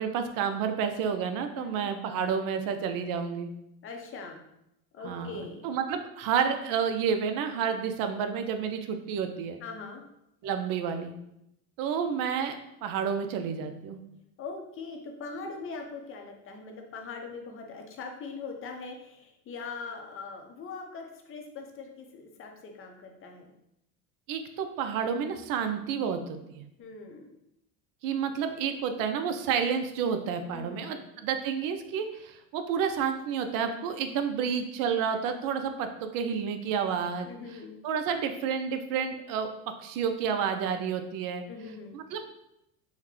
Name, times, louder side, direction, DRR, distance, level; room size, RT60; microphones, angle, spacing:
voice 1, 0.0-3.5 5.0-9.6 10.4-11.1 11.8-12.5 12.8-14.0 24.3-26.6 28.0-39.5 39.8-41.4 41.9-42.2, right 7 dB, 55° right, 7 dB, 0.5 m, -30 dB
voice 2, 1.6-1.9 3.8-4.4 4.9-5.7 9.6-10.0 14.4-23.5 26.8-27.3 30.5-31.0 37.2-37.8 41.5-42.0, left 4 dB, 30° left, 3 dB, 0.6 m, -41 dB
3.7 x 2.2 x 3.1 m, 0.82 s
supercardioid pair, 100°, 41 cm